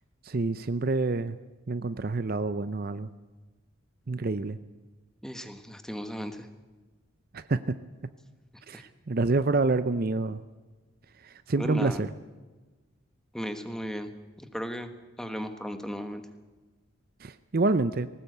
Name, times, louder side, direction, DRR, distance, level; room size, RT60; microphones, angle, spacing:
voice 1, 0.2-1.4 1.7-3.1 4.1-4.6 7.3-7.8 8.7-10.4 11.2-12.1 17.2-18.1, right 3 dB, 45° right, 12 dB, 0.6 m, -27 dB
voice 2, 5.2-6.5 8.7-8.8 11.6-12.0 13.3-14.1 14.4-14.9 15.2-16.2, equal, 5° left, 7 dB, 1.4 m, -35 dB
19.5 x 18.0 x 8.0 m, 1.2 s
head